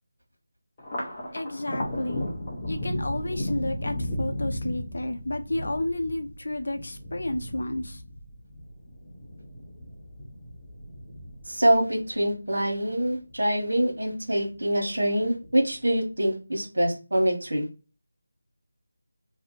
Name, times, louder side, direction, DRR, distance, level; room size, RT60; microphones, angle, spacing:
Thunder, 0.8-13.4 13.8-14.6 15.0-15.8, equal, 25° left, 0.8 m, -35 dB
voice 1, 1.3-2.2 2.7-8.0, left 1 dB, 70° left, 7 dB, 0.6 m, -31 dB
voice 2, 11.5-17.6, right 1 dB, 80° right, 3 dB, 1.1 m, -25 dB
2.7 x 2.2 x 3.7 m, 0.32 s
figure-of-eight pair, 170°, 0 cm